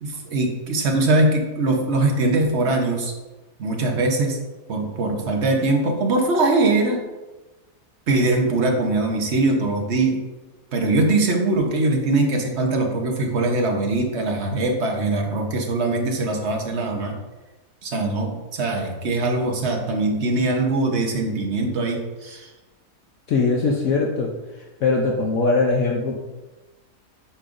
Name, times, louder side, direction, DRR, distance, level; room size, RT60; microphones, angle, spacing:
voice 1, 0.0-3.1 3.6-4.4 4.7-7.0 8.1-10.2 10.7-17.1 17.8-22.5, right 2 dB, 50° right, 1 dB, 1.1 m, -22 dB
voice 2, 23.3-24.3 24.8-26.1, left 3 dB, 65° left, 0 dB, 1.0 m, -20 dB
8.6 x 5.2 x 2.6 m, 1.1 s
omnidirectional pair, 1.7 m